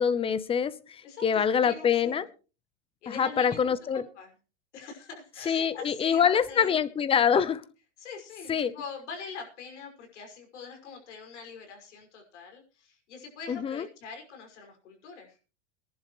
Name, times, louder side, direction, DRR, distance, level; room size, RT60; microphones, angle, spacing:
voice 1, 0.0-2.3 3.1-4.0 5.5-7.6 8.5-8.7 13.5-13.9, left 7 dB, 15° left, 16 dB, 0.8 m, -25 dB
voice 2, 1.0-2.2 3.0-4.3 4.7-6.8 7.1-7.4 8.0-15.4, left 5 dB, 85° left, 3 dB, 5.9 m, -44 dB
22.5 x 11.0 x 3.1 m, 0.34 s
supercardioid pair, 140°, 34 cm